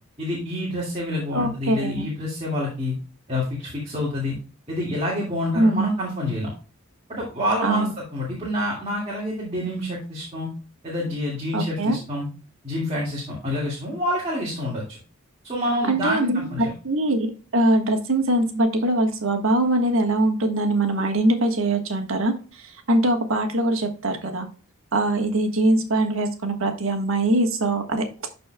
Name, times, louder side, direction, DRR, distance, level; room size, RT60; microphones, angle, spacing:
voice 1, 0.2-2.9 3.3-4.4 4.7-6.5 7.1-10.5 10.8-12.3 12.6-15.0 15.4-16.7, left 1 dB, 30° right, -5 dB, 2.0 m, -27 dB
voice 2, 1.3-2.1 5.5-5.9 7.6-7.9 11.5-12.0 15.9-17.3 17.5-24.5 24.9-28.0, right 1 dB, 70° right, 4 dB, 1.4 m, -22 dB
12.5 x 4.3 x 2.2 m, 0.37 s
head